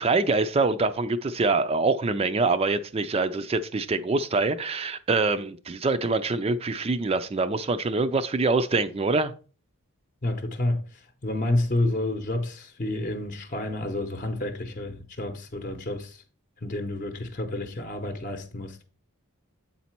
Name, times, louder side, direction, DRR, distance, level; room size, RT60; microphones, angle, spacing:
voice 1, 0.0-9.3, right 3 dB, 25° right, 0.4 m, -25 dB
voice 2, 10.2-16.2 16.6-18.8, left 1 dB, 35° left, 0.8 m, -29 dB
8.1 x 4.1 x 4.4 m
head